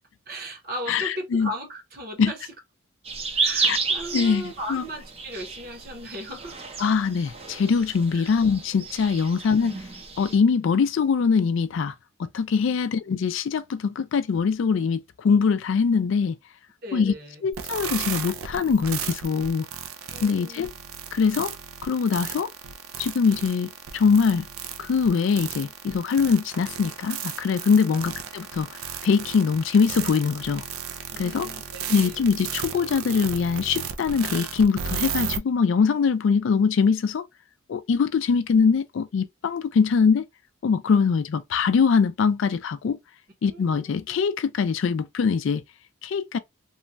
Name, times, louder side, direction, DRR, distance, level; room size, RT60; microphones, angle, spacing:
voice 1, 0.3-2.5 3.3-6.6 8.1-8.3 9.3-9.4 16.8-17.4 20.1-20.7 31.1-32.2 43.4-44.2, equal, 45° right, 0.9 m, -37 dB
voice 2, 0.9-1.5 2.2-2.3 3.6-3.8 4.1-4.8 6.8-9.8 10.2-11.9 12.3-16.3 16.9-17.1 17.4-19.6 20.2-20.7 21.1-21.5 21.8-22.5 23.0-24.5 24.8-28.7 29.0-30.6 31.2-31.5 31.9-37.3 37.7-40.2 40.6-43.0 43.4-45.6 46.0-46.4, left 5 dB, 65° left, 0.3 m, -22 dB
sound 1, 3.0-10.4, right 4 dB, 30° right, 0.5 m, -31 dB
sound 2, 17.5-35.4, right 7 dB, 85° right, 0.4 m, -34 dB
3.0 x 2.2 x 2.5 m
head